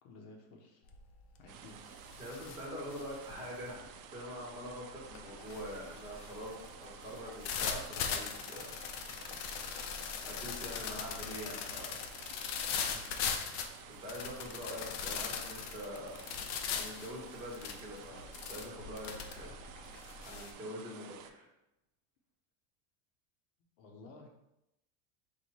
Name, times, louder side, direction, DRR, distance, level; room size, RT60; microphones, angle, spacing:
voice 1, 0.0-0.8 1.4-1.8 10.8-11.0 12.8-13.1 23.8-24.3, left 2 dB, 60° left, 1 dB, 0.9 m, -54 dB
sound 1, 0.9-1.2 1.6-20.5, left 7 dB, 40° left, 0.4 m, -40 dB
sound 2, 1.5-21.3, right 9 dB, 80° right, 0.6 m, -53 dB
voice 2, 2.2-8.7 10.2-11.9 13.9-16.2 16.7-19.5 20.2-21.5, equal, 10° right, -5 dB, 1.3 m, -44 dB
4.7 x 2.5 x 4.1 m, 0.87 s
cardioid pair, 155°, 41 cm